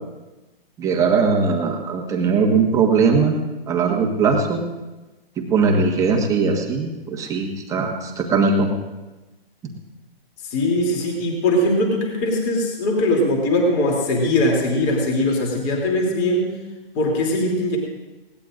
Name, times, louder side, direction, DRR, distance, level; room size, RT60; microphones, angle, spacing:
voice 1, 0.8-3.4 3.7-4.6 5.4-8.7, right 4 dB, 10° right, 1 dB, 1.4 m, -20 dB
voice 2, 10.5-16.5 16.9-17.8, left 1 dB, 25° left, 0 dB, 3.0 m, -20 dB
20.5 x 18.0 x 2.6 m, 1.1 s
hypercardioid pair, 150°, 30 cm